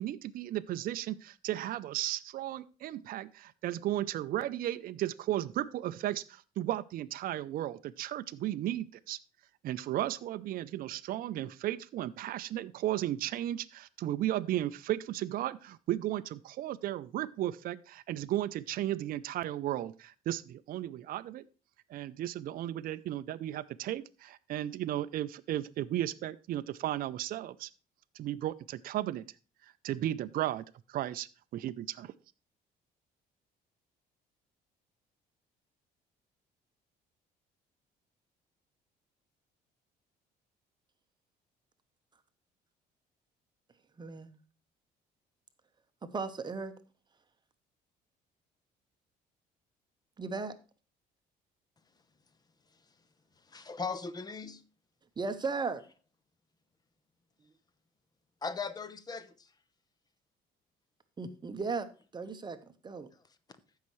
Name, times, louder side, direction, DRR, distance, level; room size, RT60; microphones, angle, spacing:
voice 1, 0.0-9.2 9.6-21.5 21.9-27.7 28.1-29.2 29.6-32.1, right 13 dB, 60° right, 0.5 m, -35 dB
voice 2, 44.0-44.4 46.0-46.7 50.2-50.5 55.2-55.8 61.2-61.9 62.1-62.6 62.8-63.1, right 4 dB, 25° right, 0.9 m, -36 dB
voice 3, 53.5-54.6 58.4-59.3, left 4 dB, 25° left, 0.9 m, -38 dB
14.5 x 5.6 x 3.1 m
cardioid pair, 110°, 17 cm